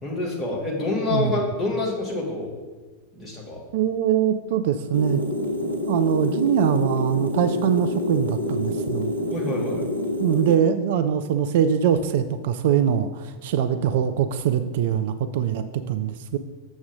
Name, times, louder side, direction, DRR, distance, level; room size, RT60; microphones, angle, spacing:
voice 1, 0.0-2.5 3.1-3.6 9.3-9.8, left 2 dB, 15° left, -3 dB, 2.0 m, -27 dB
voice 2, 1.1-1.4 3.7-5.2 5.9-9.1 10.2-16.4, right 8 dB, 55° right, 9 dB, 0.4 m, -23 dB
sound 1, 4.9-10.6, left 1 dB, 85° right, 0.9 m, -27 dB
7.1 x 6.3 x 3.6 m, 1.3 s
figure-of-eight pair, 90°, 0 cm